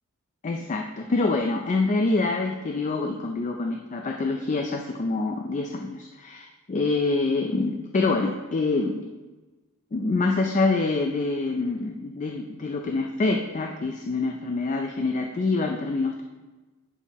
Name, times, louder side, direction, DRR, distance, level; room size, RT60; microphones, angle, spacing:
voice 1, 0.4-9.1 9.9-16.2, left 3 dB, 35° left, 3 dB, 0.4 m, -26 dB
10.5 x 4.4 x 3.0 m, 1.2 s
head